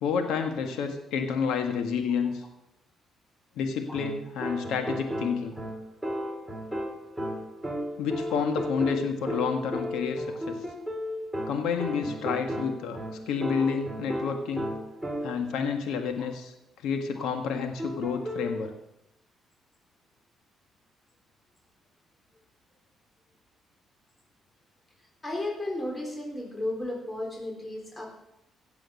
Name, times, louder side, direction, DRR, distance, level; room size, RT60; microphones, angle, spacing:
voice 1, 0.0-2.4 3.6-5.6 8.0-10.6 11.5-13.0 13.3-14.7 15.2-16.5 16.8-18.7, left 6 dB, 90° left, 5 dB, 1.5 m, -29 dB
sound 1, 3.9-15.6 17.8-18.6, equal, ahead, 3.3 m, -34 dB
voice 2, 25.2-28.1, left 1 dB, 20° left, 0 dB, 3.6 m, -34 dB
16.5 x 7.7 x 6.4 m, 0.87 s
cardioid pair, 90°, 0 cm